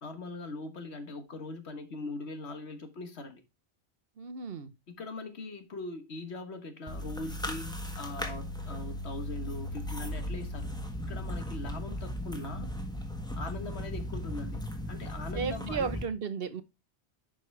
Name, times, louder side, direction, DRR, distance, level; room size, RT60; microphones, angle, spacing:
voice 1, 0.0-3.4 4.9-10.7 11.1-12.7 13.4-15.9, left 2 dB, 70° left, 1.6 m, -41 dB
voice 2, 4.2-4.7 15.3-16.6, right 6 dB, 60° right, 1.1 m, -34 dB
sound 1, 6.9-16.0, left 1 dB, 5° left, 1.4 m, -37 dB
11.0 x 5.3 x 3.2 m
omnidirectional pair, 1.2 m